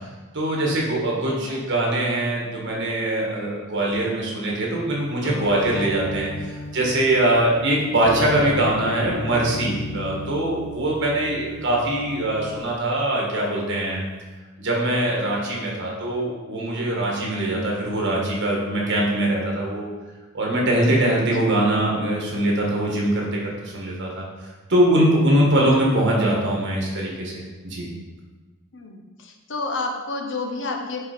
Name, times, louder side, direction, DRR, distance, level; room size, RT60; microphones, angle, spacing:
voice 1, 0.3-14.0 14.6-19.9 20.3-27.9, right 1 dB, 60° right, -2 dB, 1.6 m, -22 dB
sound 1, 5.2-12.7, equal, 40° left, 0.5 m, -34 dB
voice 2, 28.7-31.1, left 3 dB, 65° left, 2 dB, 0.9 m, -30 dB
5.9 x 4.4 x 4.4 m, 1.3 s
head